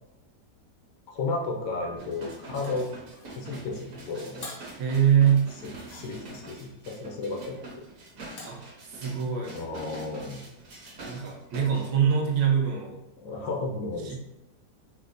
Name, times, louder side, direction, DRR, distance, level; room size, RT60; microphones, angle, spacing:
voice 1, 1.1-2.9 3.4-4.5 5.9-7.6 9.5-10.5 13.2-14.2, left 3 dB, 80° left, 0 dB, 1.3 m, -33 dB
sound 1, 2.0-11.9 12.4-12.5, right 2 dB, 60° right, 1.1 m, -44 dB
sound 2, 2.6-3.4 4.4-4.8 5.8-6.5 8.4-8.7, left 2 dB, 55° left, 0.6 m, -45 dB
voice 2, 4.7-5.5 8.4-9.5 11.1-13.0 14.0-14.2, right 8 dB, 75° right, 0 dB, 1.2 m, -24 dB
4.4 x 2.1 x 2.5 m, 0.94 s
omnidirectional pair, 1.8 m